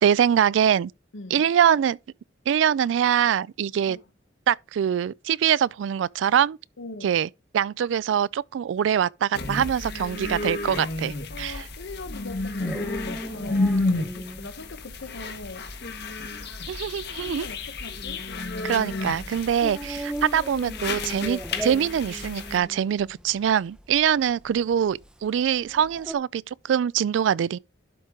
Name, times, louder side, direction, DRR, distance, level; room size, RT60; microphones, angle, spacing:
voice 1, 0.0-0.9 1.3-2.0 2.5-4.0 4.5-6.6 7.0-7.3 7.5-11.7 16.7-17.5 18.6-27.6, right 9 dB, 80° right, 0.3 m, -23 dB
voice 2, 1.1-1.5 3.9-4.0 6.8-7.1 11.3-13.7 13.9-15.7 17.2-18.9, left 3 dB, 85° left, 0.9 m, -41 dB
sound 1, 9.3-22.6, left 2 dB, 60° left, 1.4 m, -31 dB
sound 2, 11.9-26.1, equal, 5° right, 0.6 m, -39 dB
11.5 x 4.6 x 3.7 m
head